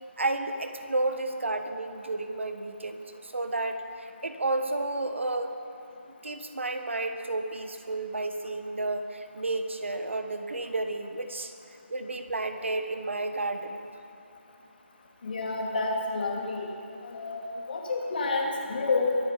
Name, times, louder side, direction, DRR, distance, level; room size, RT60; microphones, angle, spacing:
voice 1, 0.2-5.5 6.2-11.5 11.9-13.9, right 2 dB, 70° right, 8 dB, 1.3 m, -31 dB
voice 2, 15.2-16.7 17.0-19.2, left 3 dB, 45° left, 0 dB, 2.5 m, -29 dB
23.5 x 9.2 x 5.4 m, 2.9 s
figure-of-eight pair, 155°, 7 cm